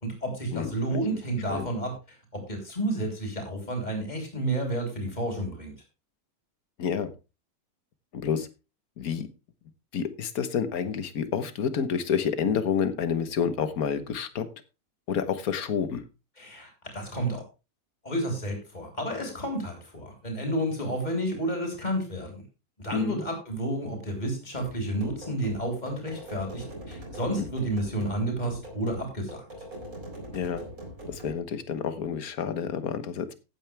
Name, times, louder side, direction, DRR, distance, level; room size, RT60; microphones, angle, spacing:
voice 1, 0.0-2.0 2.3-5.7 16.4-17.4 18.0-22.4 22.8-29.4, right 1 dB, 30° left, 2 dB, 3.8 m, -31 dB
voice 2, 0.5-1.0 1.5-1.7 6.8-7.1 8.1-8.5 9.0-9.3 9.9-14.5 15.1-16.0 22.9-23.2 27.4-27.5 30.3-30.6 31.1-33.4, left 7 dB, 75° left, 12 dB, 1.6 m, -29 dB
sound 1, 24.6-31.4, right 1 dB, 65° right, 4.5 m, -42 dB
15.0 x 9.1 x 3.4 m, 0.29 s
omnidirectional pair, 1.6 m